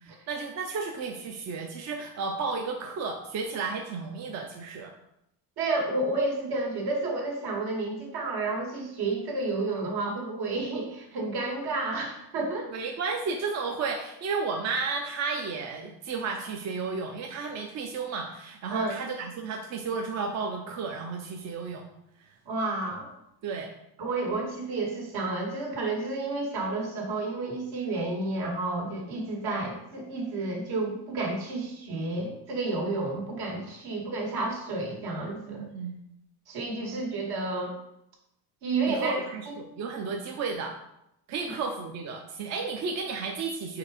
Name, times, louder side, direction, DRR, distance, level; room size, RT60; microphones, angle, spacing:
voice 1, 0.0-4.9 12.7-21.9 23.4-23.7 35.5-35.9 36.9-37.0 38.9-40.8 41.3-43.8, right 4 dB, 40° right, 2 dB, 0.6 m, -33 dB
voice 2, 5.6-12.7 18.7-19.0 22.5-23.1 24.0-35.7 36.5-37.8 38.6-39.2 39.5-39.6 41.5-41.6, right 2 dB, 65° right, 0 dB, 1.9 m, -31 dB
4.8 x 4.7 x 4.9 m, 0.82 s
cardioid pair, 165°, 41 cm